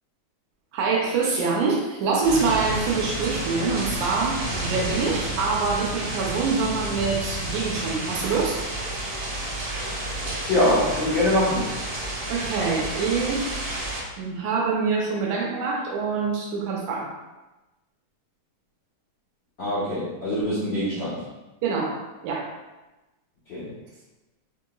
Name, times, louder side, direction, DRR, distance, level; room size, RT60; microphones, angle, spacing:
voice 1, 0.7-8.6 12.3-13.6 14.2-17.1 21.6-21.9 22.2-22.5, right 4 dB, 80° right, -2 dB, 2.0 m, -25 dB
sound 1, 2.2-14.0, right 1 dB, 60° right, 1.7 m, -30 dB
voice 2, 10.5-11.7 19.6-21.2 23.4-23.7, left 1 dB, 65° left, -11 dB, 1.1 m, -23 dB
6.3 x 2.9 x 2.3 m, 1.1 s
omnidirectional pair, 4.0 m